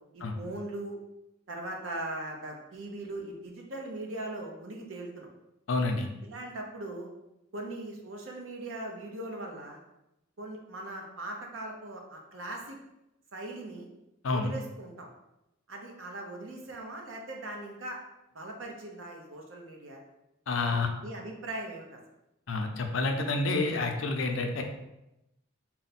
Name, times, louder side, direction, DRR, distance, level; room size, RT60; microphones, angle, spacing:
voice 1, 0.1-1.0 1.5-5.3 6.2-7.1 7.5-9.8 10.4-12.8 13.3-13.9 14.3-15.1 15.7-18.0 18.3-20.0 20.6-22.0, right 1 dB, 70° right, 1 dB, 0.8 m, -40 dB
voice 2, 5.7-6.1 14.2-14.5 20.5-20.9 22.5-24.6, left 3 dB, 70° left, 4 dB, 0.5 m, -28 dB
4.1 x 2.2 x 4.1 m, 0.89 s
head